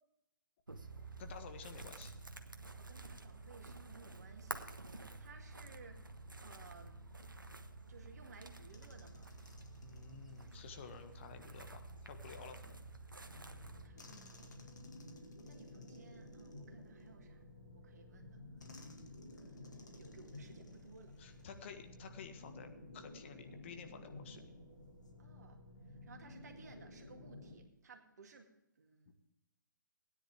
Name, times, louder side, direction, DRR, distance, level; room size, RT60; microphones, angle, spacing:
sound 1, 0.7-13.9, right 2 dB, 80° right, 1.2 m, -50 dB
voice 1, 1.2-2.1 9.8-12.8 21.2-24.5 29.1-29.2, left 6 dB, 35° left, 7 dB, 1.4 m, -52 dB
voice 2, 2.8-6.1 6.4-7.0 7.9-9.3 12.6-12.8 13.8-14.5 15.4-17.4 17.7-18.4 18.8-18.9 19.3-21.8 25.2-25.6 26.0-28.5 28.8-29.1, right 4 dB, 55° right, 3 dB, 2.2 m, -59 dB
sound 2, 8.7-11.4 14.0-17.5 18.6-22.0 22.2-22.4 24.8-25.1, left 3 dB, 60° left, 2.2 m, -62 dB
sound 3, 13.2-27.6, left 1 dB, 90° left, 3.6 m, -54 dB
17.0 x 10.0 x 3.6 m, 0.89 s
figure-of-eight pair, 130°, 11 cm